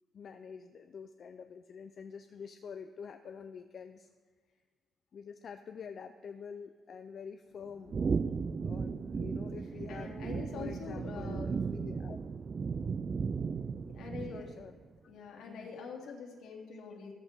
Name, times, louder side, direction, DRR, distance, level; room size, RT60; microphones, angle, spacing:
voice 1, 0.1-4.1 5.1-8.0 8.6-10.2 10.6-12.2 14.3-14.8 15.5-15.8 16.7-16.8, left 6 dB, 55° left, 8 dB, 0.6 m, -47 dB
sound 1, 7.9-14.7, right 5 dB, 40° right, 0.4 m, -35 dB
voice 2, 9.9-11.6 13.8-14.5 15.1-17.1, left 5 dB, 80° left, 0 dB, 2.8 m, -44 dB
14.0 x 13.5 x 3.8 m, 1.5 s
cardioid pair, 90°, 0 cm